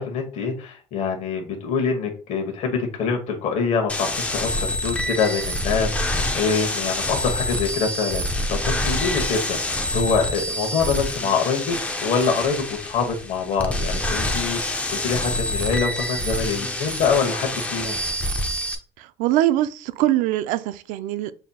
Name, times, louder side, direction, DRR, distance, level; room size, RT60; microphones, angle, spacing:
voice 1, 0.0-18.0, left 5 dB, 50° left, 1.0 m, -25 dB
sound 1, 3.9-18.8, left 1 dB, 10° left, 0.5 m, -26 dB
voice 2, 19.0-21.3, right 14 dB, 65° right, 0.4 m, -22 dB
6.8 x 2.7 x 2.3 m
cardioid pair, 130°, 15 cm